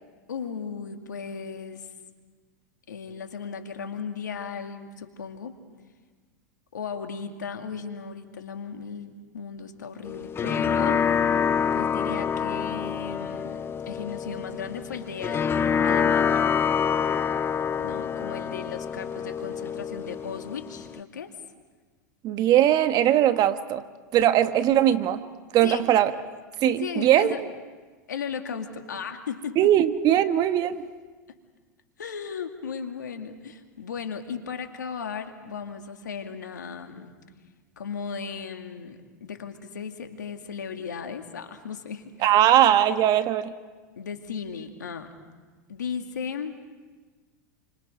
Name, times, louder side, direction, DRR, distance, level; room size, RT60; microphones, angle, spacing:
voice 1, 0.3-1.9 2.9-5.6 6.7-11.0 11.7-15.4 15.8-16.7 17.8-21.3 25.6-25.8 26.8-27.4 28.1-29.7 32.0-37.1 37.8-42.3 44.0-45.1 45.7-46.6, left 6 dB, 90° left, 5 dB, 2.3 m, -36 dB
sound 1, 10.0-21.0, left 7 dB, 25° left, 0.8 m, -26 dB
voice 2, 22.2-23.8 24.1-25.2 25.5-26.1 26.6-27.3 29.6-30.8 42.2-43.5, right 11 dB, 45° right, 10 dB, 1.4 m, -20 dB
29.5 x 25.5 x 5.2 m, 1.4 s
hypercardioid pair, 100°, 9 cm